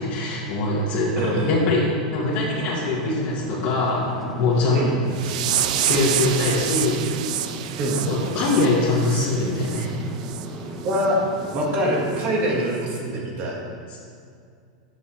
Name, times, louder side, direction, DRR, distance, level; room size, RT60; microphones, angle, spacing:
voice 1, 0.0-1.8 2.1-4.8 5.2-5.3 5.7-7.5 7.9-9.9 13.9-14.0, left 2 dB, 50° left, -8 dB, 1.6 m, -23 dB
voice 2, 1.2-1.5 4.7-4.9 7.8-8.0 10.8-11.2 11.5-13.6, equal, 40° right, -1 dB, 1.8 m, -24 dB
sound 1, 2.3-12.6, right 1 dB, ahead, 1.0 m, -37 dB
sound 2, 5.1-9.9 10.2-10.5 10.9-11.0 11.5-11.6 12.1-12.2, right 11 dB, 70° right, 0.4 m, -28 dB
8.2 x 6.0 x 4.4 m, 2.3 s
supercardioid pair, 130°, 4 cm